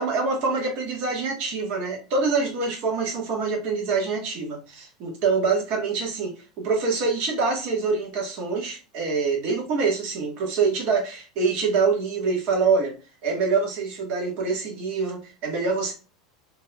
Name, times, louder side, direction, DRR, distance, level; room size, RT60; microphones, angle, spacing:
voice 1, 0.0-12.9 13.2-15.9, right 4 dB, 50° right, 0 dB, 1.4 m, -25 dB
3.8 x 2.7 x 2.2 m, 0.33 s
hypercardioid pair, 85°, 3 cm